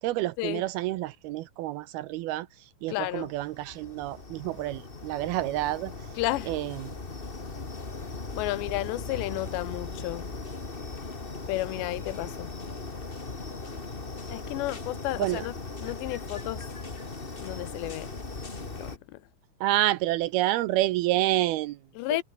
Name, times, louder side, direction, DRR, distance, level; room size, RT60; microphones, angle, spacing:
voice 1, 0.0-6.1 6.5-6.9 15.2-15.5 19.6-21.8, right 16 dB, 75° right, 2.4 m, -28 dB
voice 2, 2.9-3.3 6.2-6.5 8.3-10.4 11.5-12.5 14.3-15.5 15.8-16.7 17.4-18.1 18.8-19.2 22.0-22.2, left 18 dB, 90° left, 3.1 m, -32 dB
sound 1, 3.1-19.0, left 3 dB, 35° left, 0.8 m, -39 dB
omnidirectional pair, 4.9 m